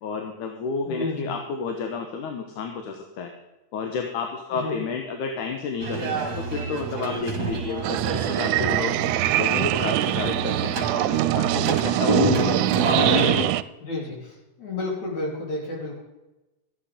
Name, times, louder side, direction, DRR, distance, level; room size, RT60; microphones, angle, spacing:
voice 1, 0.0-3.3 3.7-9.0 9.4-13.0, left 5 dB, 85° left, 4 dB, 2.7 m, -31 dB
voice 2, 0.9-1.3 4.6-4.7 13.8-14.3 14.6-16.0, left 2 dB, 70° left, -1 dB, 4.8 m, -31 dB
sound 1, 5.8-13.4, right 3 dB, 40° right, 1.9 m, -27 dB
sound 2, 7.8-13.6, right 16 dB, 80° right, 1.9 m, -24 dB
13.5 x 9.8 x 5.1 m, 1.0 s
omnidirectional pair, 3.5 m